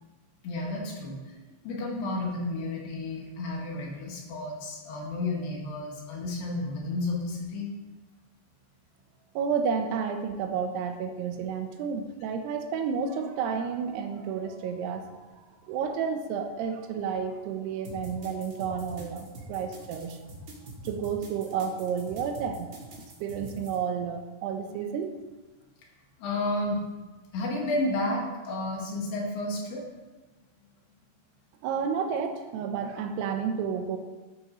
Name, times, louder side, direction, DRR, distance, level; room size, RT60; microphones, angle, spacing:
voice 1, 0.4-1.4 1.6-7.7 26.2-26.8 27.3-29.9, left 2 dB, 85° left, -1 dB, 3.8 m, -31 dB
voice 2, 9.4-20.2 20.8-22.8 23.2-25.1 31.6-34.0, right 6 dB, 90° right, 6 dB, 2.9 m, -31 dB
sound 1, 17.8-23.8, right 1 dB, 55° right, 1.3 m, -44 dB
11.5 x 8.6 x 3.1 m, 1.2 s
omnidirectional pair, 4.7 m